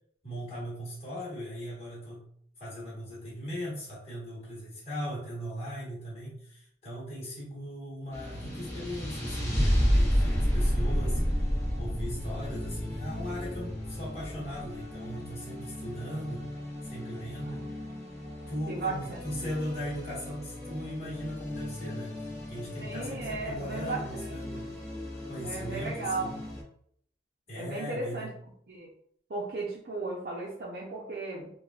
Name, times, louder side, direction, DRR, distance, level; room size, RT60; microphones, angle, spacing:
voice 1, 0.2-2.3 2.6-11.2 11.8-16.5 16.8-17.7 18.5-24.7 25.3-26.3 27.5-28.3, equal, 35° left, -8 dB, 1.3 m, -38 dB
sound 1, 8.1-26.6, equal, 15° left, 0.7 m, -32 dB
voice 2, 18.7-19.2 22.8-24.7 25.4-26.3 27.5-28.3 28.7-28.9 29.3-31.5, right 3 dB, 55° right, -5 dB, 0.6 m, -36 dB
3.4 x 2.3 x 2.4 m, 0.66 s
head